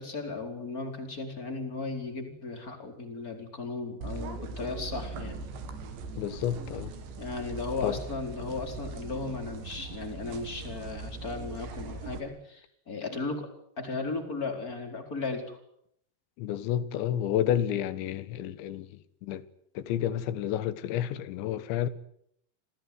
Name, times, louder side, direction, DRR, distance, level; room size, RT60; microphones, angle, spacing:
voice 1, 0.0-5.4 7.2-13.5 13.8-15.6, left 3 dB, 20° left, 4.6 m, -36 dB
sound 1, 4.0-12.2, right 3 dB, 75° right, 4.8 m, -40 dB
voice 2, 6.2-6.9 7.8-8.0 16.4-18.9 19.2-19.4 19.8-21.9, left 11 dB, 80° left, 3.6 m, -30 dB
27.5 x 18.5 x 9.5 m
omnidirectional pair, 5.2 m